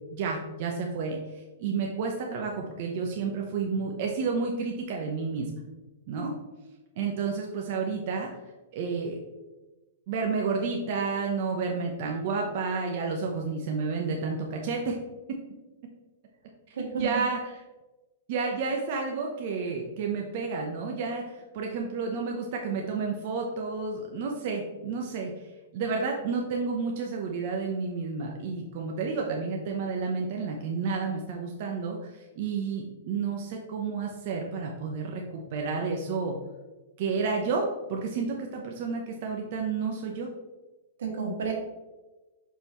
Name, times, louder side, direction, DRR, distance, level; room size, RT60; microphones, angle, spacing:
voice 1, 0.1-5.5 6.1-6.4 7.0-8.3 8.7-9.2 10.1-15.0 15.3-15.4 17.0-17.4 18.3-25.3 25.7-36.3 37.0-40.3, right 4 dB, 45° right, 1 dB, 0.9 m, -31 dB
voice 2, 16.7-17.3 41.0-41.5, right 5 dB, 85° right, 0 dB, 2.0 m, -31 dB
6.5 x 5.5 x 3.1 m, 1.1 s
hypercardioid pair, 160°, 0 cm